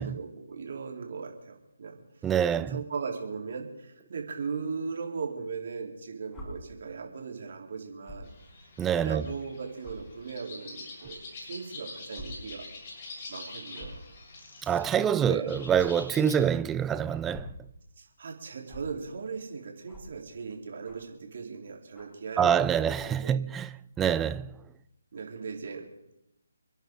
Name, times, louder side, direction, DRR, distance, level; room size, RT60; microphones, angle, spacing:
voice 1, 0.0-2.0 2.6-8.3 9.0-12.7 13.3-14.0 15.1-15.5 18.0-23.4 25.1-25.9, right 5 dB, 55° right, 3.7 m, -38 dB
voice 2, 2.2-2.8 8.8-9.2 14.6-17.5 22.4-24.6, right 8 dB, 10° right, 0.4 m, -26 dB
sound 1, 6.3-6.5 8.0-8.3 9.0-9.1 9.8-9.9 11.0-11.1 12.1-12.3 12.6-12.7 13.7-14.0 15.7-15.8 17.1-17.6 18.7-18.8 19.9-20.1 20.8-21.1 21.9-22.2 22.9-23.2 23.9-24.2, equal, 15° left, 6.4 m, -46 dB
sound 2, 8.2-16.3, left 3 dB, 35° left, 7.1 m, -46 dB
29.5 x 10.5 x 3.9 m
figure-of-eight pair, 150°, 0 cm